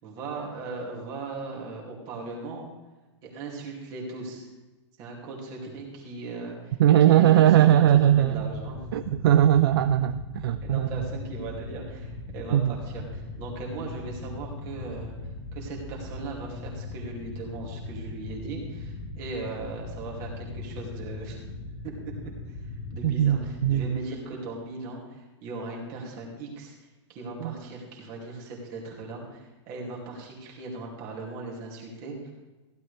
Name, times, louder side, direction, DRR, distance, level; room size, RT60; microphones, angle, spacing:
voice 1, 0.0-2.7 3.2-4.5 5.0-6.8 7.1-8.8 10.6-21.4 21.8-26.8 27.1-32.3, right 3 dB, 25° right, -2 dB, 2.5 m, -38 dB
voice 2, 6.8-8.5 8.9-11.0 12.5-12.7 23.0-24.0 27.4-27.5, right 11 dB, 50° right, 11 dB, 0.4 m, -20 dB
sound 1, 7.3-23.8, left 2 dB, 35° left, 1.5 m, -39 dB
15.5 x 11.5 x 3.3 m, 1.2 s
supercardioid pair, 175°, 15 cm